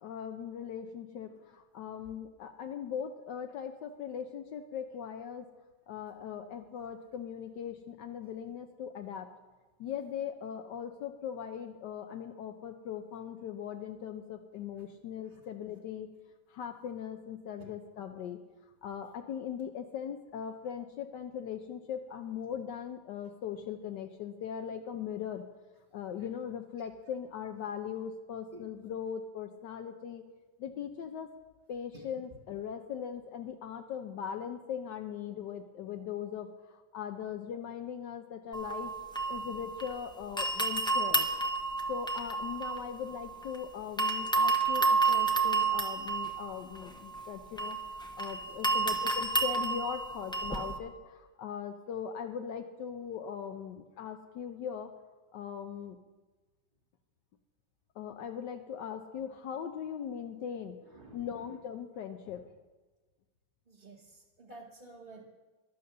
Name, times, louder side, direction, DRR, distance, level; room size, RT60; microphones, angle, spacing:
voice 1, 0.0-5.5 5.9-9.3 9.8-16.1 16.5-18.4 18.8-25.4 25.9-30.2 30.6-31.3 31.7-38.9 39.3-41.3 41.9-54.9 55.3-56.0 58.0-60.8 61.1-62.4, left 8 dB, 75° left, 5 dB, 1.3 m, -40 dB
sound 1, 38.5-40.0 40.4-43.6 44.0-50.8, right 3 dB, 5° left, 0.4 m, -30 dB
voice 2, 60.9-61.3 63.7-65.2, right 2 dB, 30° right, -4 dB, 1.2 m, -51 dB
12.0 x 9.6 x 6.6 m, 1.3 s
omnidirectional pair, 2.0 m